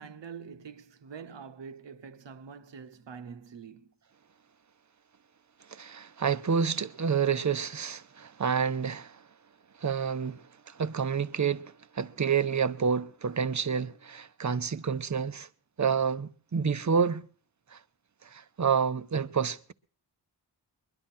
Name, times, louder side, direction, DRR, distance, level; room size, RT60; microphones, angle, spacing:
voice 1, 0.0-3.9, right 6 dB, 80° right, 1.1 m, -45 dB
voice 2, 5.7-9.2 9.8-15.5 15.8-17.2 17.7-17.8 18.2-19.7, right 6 dB, 40° right, 0.8 m, -29 dB
22.0 x 11.5 x 4.3 m
wide cardioid pair, 100°, 43 cm